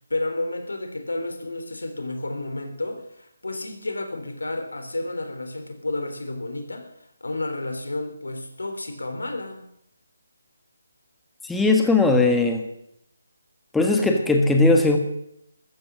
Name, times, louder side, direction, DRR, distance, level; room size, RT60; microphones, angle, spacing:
voice 1, 0.1-6.9 7.2-9.6, left 2 dB, 90° left, 7 dB, 3.6 m, -31 dB
voice 2, 11.4-12.7 13.7-15.0, left 2 dB, 5° left, 3 dB, 1.4 m, -19 dB
14.0 x 14.0 x 6.3 m, 0.77 s
figure-of-eight pair, 160°, 0 cm